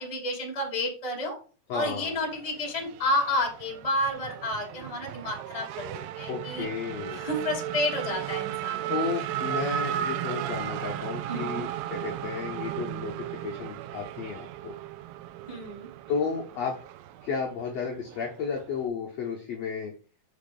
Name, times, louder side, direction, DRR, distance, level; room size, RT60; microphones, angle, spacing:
voice 1, 0.0-1.4 1.7-5.9 6.1-6.7 7.1-8.8 11.3-11.7 15.5-15.9, left 1 dB, 15° left, 0 dB, 1.5 m, -30 dB
voice 2, 1.7-2.2 6.3-7.3 8.9-14.8 16.1-16.8 17.2-19.9, left 6 dB, 65° left, -1 dB, 1.8 m, -33 dB
Race car auto racing / Accelerating revving vroom, 1.9-18.9, right 12 dB, 85° right, 2.4 m, -35 dB
6.4 x 5.0 x 5.4 m, 0.38 s
omnidirectional pair, 4.1 m